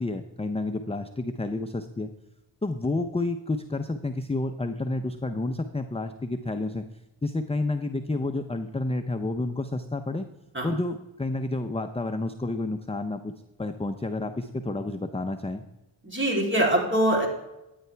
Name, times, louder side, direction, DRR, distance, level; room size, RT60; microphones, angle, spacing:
voice 1, 0.0-2.1 2.6-6.9 7.2-10.3 10.6-13.3 13.6-15.7, left 2 dB, 15° left, 8 dB, 0.5 m, -30 dB
voice 2, 16.0-17.3, right 1 dB, 25° right, -1 dB, 3.2 m, -23 dB
14.0 x 9.4 x 3.4 m, 0.97 s
cardioid pair, 65°, 48 cm